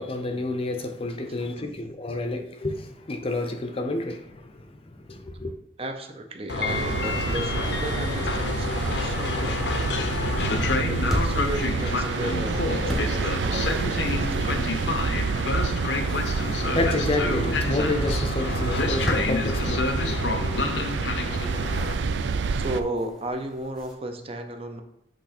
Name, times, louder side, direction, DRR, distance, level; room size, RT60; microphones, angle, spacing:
voice 1, 0.0-4.5 5.1-5.5 16.1-20.2, left 2 dB, 30° left, 0.6 m, -30 dB
voice 2, 1.3-2.3 5.8-10.2 10.9-14.6 22.5-24.8, right 1 dB, 35° right, 0.6 m, -35 dB
Train, 6.5-21.9, left 3 dB, 75° left, 0.6 m, -29 dB
sound 1, 6.7-22.8, right 4 dB, 75° right, 0.4 m, -28 dB
sound 2, 9.9-23.9, equal, ahead, 1.1 m, -39 dB
8.2 x 3.1 x 4.2 m
head